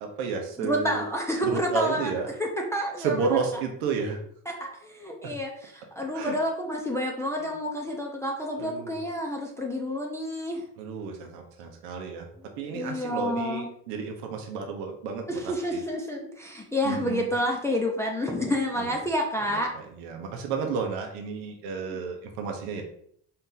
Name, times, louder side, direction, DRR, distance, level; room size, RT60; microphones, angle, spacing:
voice 1, 0.0-1.1 1.4-2.3 3.0-4.2 5.2-5.4 6.1-6.4 7.4-7.5 8.6-8.9 10.8-12.3 12.6-15.8 16.8-17.3 18.8-18.9 19.5-22.8, right 5 dB, 85° right, 3 dB, 0.9 m, -32 dB
voice 2, 0.6-2.1 2.4-3.3 4.5-10.6 12.7-13.7 15.3-19.7 21.9-22.0, equal, 5° left, -1 dB, 0.6 m, -29 dB
4.3 x 2.8 x 3.8 m, 0.66 s
cardioid pair, 105°, 40 cm